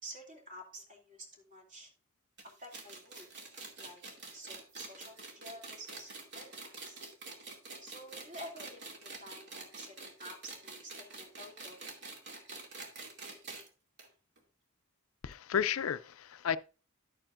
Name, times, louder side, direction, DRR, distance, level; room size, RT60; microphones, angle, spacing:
voice 1, 0.0-1.9 2.4-3.3 3.8-4.0 4.3-7.0 7.8-11.9, right 1 dB, 40° right, 2.7 m, -50 dB
sound 1, 2.4-13.7 14.0-14.1 14.4-14.5 15.3-15.4, right 3 dB, 55° right, 2.5 m, -47 dB
voice 2, 15.2-16.6, left 8 dB, 80° left, 0.5 m, -32 dB
11.5 x 8.7 x 2.5 m
head